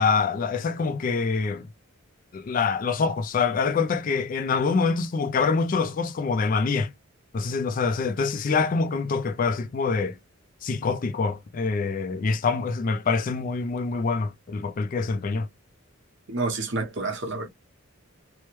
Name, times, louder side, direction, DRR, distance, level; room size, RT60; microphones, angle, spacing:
voice 1, 0.0-1.7 2.3-6.9 7.3-10.2 10.6-15.5, left 4 dB, 40° left, 0.3 m, -25 dB
voice 2, 16.3-17.5, right 3 dB, 55° right, 1.0 m, -29 dB
3.0 x 2.1 x 3.0 m
head